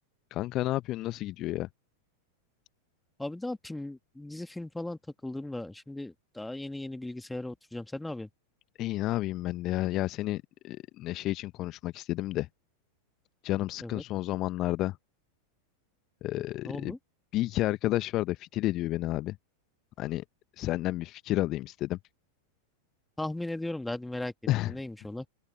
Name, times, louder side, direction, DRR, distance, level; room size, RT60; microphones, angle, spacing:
voice 1, 0.3-1.7 8.8-12.5 13.4-15.0 16.2-16.9 17.3-19.4 20.0-20.2 20.6-22.0 24.5-24.7, left 16 dB, 35° left, 1.0 m, -31 dB
voice 2, 3.2-8.3 13.8-14.0 16.6-17.0 23.2-24.3 24.7-25.3, left 1 dB, 5° left, 2.3 m, -37 dB
open air
figure-of-eight pair, 90°, 0 cm